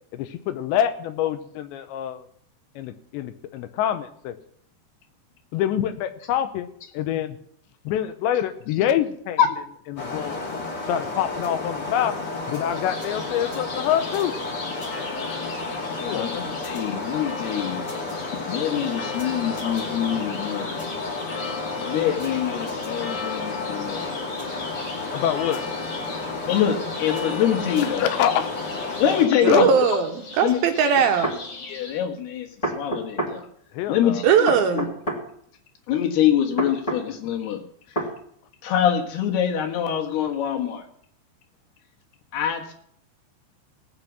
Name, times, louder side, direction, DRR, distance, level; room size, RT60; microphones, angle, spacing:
voice 1, 0.1-2.2 2.8-4.3 5.5-6.7 6.9-7.4 7.9-9.4 9.9-10.4 10.9-12.2 12.5-14.3 16.0-16.3 25.1-25.6 28.0-28.5 29.5-29.7 33.7-34.2, left 10 dB, 85° left, 10 dB, 3.2 m, -25 dB
sound 1, 10.0-29.3, left 3 dB, 30° left, 2.1 m, -32 dB
sound 2, 12.7-32.0, left 4 dB, 50° left, 2.7 m, -37 dB
voice 2, 16.1-18.2 18.5-20.8 21.8-24.1 26.4-28.4 29.0-29.7 30.4-30.6 31.7-32.5 32.7-33.5 33.9-34.9 35.9-37.6 38.6-40.9 42.3-42.7, left 9 dB, 70° left, 3 dB, 3.3 m, -25 dB
voice 3, 29.4-31.3 34.2-34.9, right 7 dB, 75° right, 5 dB, 2.5 m, -19 dB
sound 3, 29.7-29.8 30.9-31.4 32.6-33.4 34.5-35.2 36.6-37.0 37.9-38.1, right 1 dB, 15° left, 2.1 m, -27 dB
17.5 x 8.8 x 6.1 m, 0.67 s
omnidirectional pair, 5.0 m